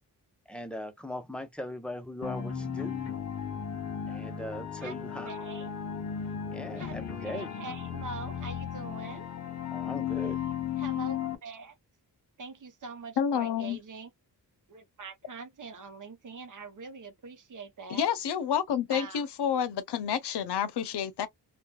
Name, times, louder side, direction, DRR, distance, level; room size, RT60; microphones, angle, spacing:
voice 1, 0.5-2.9 4.1-5.3 6.4-7.5 9.7-10.4, left 1 dB, 5° left, 0.7 m, -39 dB
sound 1, 2.2-11.4, left 8 dB, 45° left, 1.1 m, -35 dB
voice 2, 5.2-5.7 6.8-9.3 10.8-11.7 12.4-14.1 14.7-18.1 18.9-19.2, right 4 dB, 50° right, 0.8 m, -43 dB
voice 3, 13.2-13.8 17.9-21.3, left 8 dB, 85° left, 0.6 m, -29 dB
2.9 x 2.3 x 2.2 m
cardioid pair, 75°, 40 cm